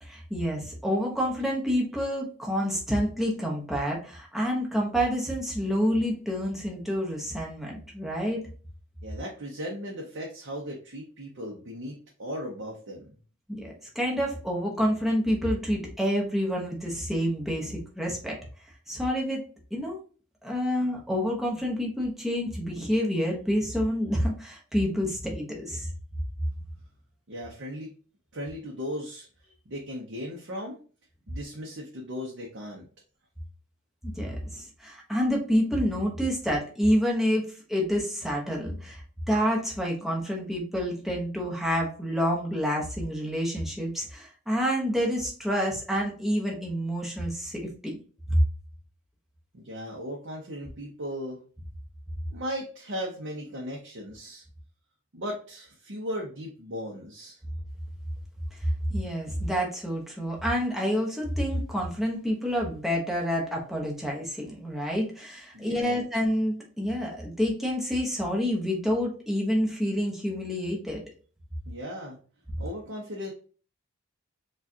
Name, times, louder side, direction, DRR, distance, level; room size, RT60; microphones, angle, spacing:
voice 1, 0.0-8.4 13.5-18.4 18.9-19.4 19.7-20.0 20.4-25.9 34.0-47.9 48.3-48.4 58.6-71.0, equal, ahead, -2 dB, 0.9 m, -28 dB
voice 2, 9.0-13.1 27.3-27.9 28.3-29.3 29.7-30.8 31.3-32.8 49.5-51.4 52.3-54.4 55.1-57.4 65.5-66.0 71.6-72.2 72.6-73.3, equal, 55° right, -1 dB, 0.8 m, -37 dB
4.7 x 2.4 x 2.7 m, 0.39 s
head